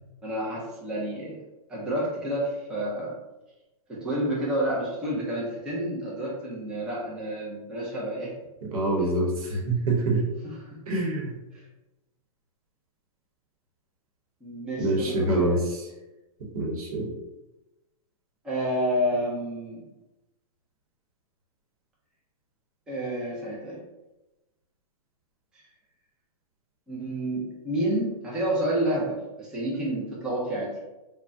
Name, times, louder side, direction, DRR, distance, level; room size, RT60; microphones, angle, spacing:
voice 1, 0.2-3.1 3.9-8.3 10.4-10.6 11.5-11.6 14.4-15.6 18.4-19.8 22.9-23.8 26.9-30.7, right 1 dB, 5° right, -6 dB, 0.4 m, -29 dB
voice 2, 8.7-10.2 10.9-11.3 14.8-15.8 16.5-17.1, right 2 dB, 70° right, 0 dB, 0.9 m, -25 dB
3.3 x 2.1 x 2.5 m, 1.0 s
hypercardioid pair, 150°, 19 cm